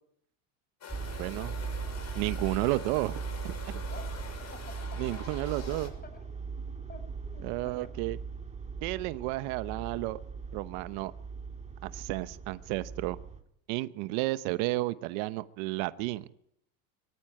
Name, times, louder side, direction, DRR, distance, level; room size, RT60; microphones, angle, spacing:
sound 1, 0.8-5.9, left 5 dB, 40° left, 6.6 m, -45 dB
sound 2, 0.9-13.4, right 5 dB, 15° right, 2.9 m, -39 dB
voice 1, 1.2-1.5 2.1-3.8 5.0-5.9 7.4-8.2 8.8-10.2 10.5-11.1 11.8-13.2 13.7-16.3, right 19 dB, 75° right, 14 dB, 1.0 m, -32 dB
voice 2, 3.9-5.2 5.7-8.0, left 3 dB, 20° left, 10 dB, 5.1 m, -51 dB
23.5 x 14.0 x 8.7 m, 0.73 s
supercardioid pair, 110°, 43 cm